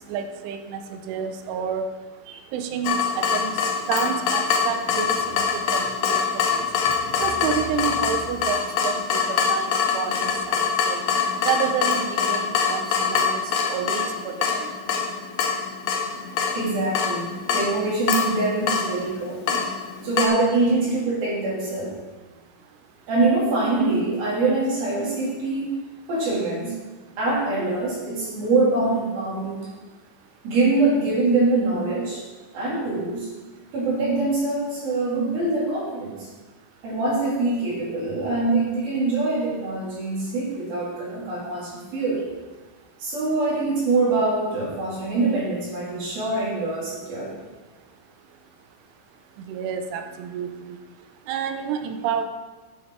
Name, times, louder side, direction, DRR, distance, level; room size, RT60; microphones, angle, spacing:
voice 1, 0.1-1.9 2.5-3.6 3.9-5.4 5.7-6.6 7.2-11.0 11.4-14.3 14.6-14.7 49.5-50.8 51.3-52.2, right 7 dB, 80° right, 7 dB, 3.2 m, -29 dB
Water tap faucet / Drip, 2.8-20.3, left 6 dB, 90° left, 2.0 m, -24 dB
voice 2, 16.5-19.7 20.0-21.9 23.1-25.7 26.1-26.7 27.2-29.7 30.4-32.2 32.5-33.3 33.7-36.3 36.8-42.2 43.0-47.4, right 3 dB, 50° right, -6 dB, 4.5 m, -24 dB
11.0 x 7.7 x 4.6 m, 1.2 s
omnidirectional pair, 5.7 m